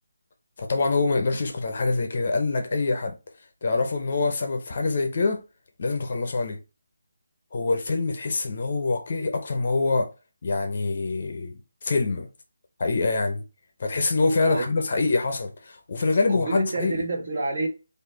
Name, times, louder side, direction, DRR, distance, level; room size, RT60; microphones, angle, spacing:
voice 1, 0.6-3.2 3.6-5.4 5.8-6.6 7.5-10.1 10.4-11.5 11.8-12.3 12.8-13.4 13.8-17.0, left 3 dB, 35° left, 0.8 m, -25 dB
voice 2, 16.3-17.7, right 2 dB, 40° right, 1.4 m, -28 dB
4.9 x 2.7 x 3.8 m
hypercardioid pair, 180°, 0 cm